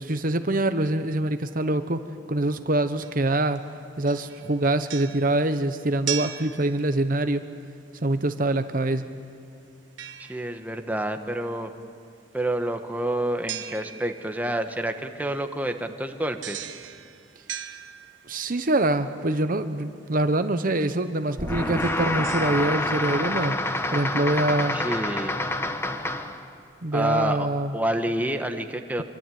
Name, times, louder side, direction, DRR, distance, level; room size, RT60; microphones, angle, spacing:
voice 1, 0.0-2.0 2.3-3.6 4.0-7.4 8.0-9.1 18.3-23.6 23.9-24.8 26.8-27.7, right 2 dB, 50° right, 9 dB, 1.0 m, -24 dB
sound 1, 3.0-3.7 4.1-7.3 10.0-10.9 13.5-14.4 16.4-18.5 20.1-20.2 20.8-21.0 21.6-22.6, right 11 dB, 85° right, 1.3 m, -38 dB
voice 2, 10.2-11.7 12.3-16.7 24.7-25.4 26.9-27.5 27.7-29.0, right 1 dB, 10° right, 6 dB, 1.3 m, -28 dB
sound 2, 21.4-26.4, left 1 dB, 15° left, 1.3 m, -27 dB
Explosion, 21.4-24.0, equal, 30° right, 3.8 m, -36 dB
25.5 x 24.0 x 9.4 m, 2.4 s
head